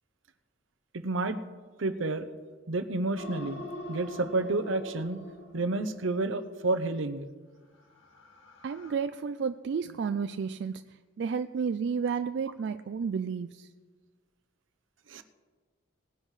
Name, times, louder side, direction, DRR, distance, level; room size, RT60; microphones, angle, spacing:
voice 1, 0.9-1.4 1.8-2.3 2.7-3.6 3.9-5.2 5.5-7.3 15.1-15.2, right 2 dB, 80° right, 10 dB, 0.8 m, -30 dB
sound 1, 3.2-6.3 7.8-8.9, left 1 dB, 85° left, 1.9 m, -44 dB
voice 2, 8.6-13.7, right 6 dB, 60° right, 10 dB, 0.3 m, -32 dB
19.5 x 10.0 x 3.2 m, 1.5 s
head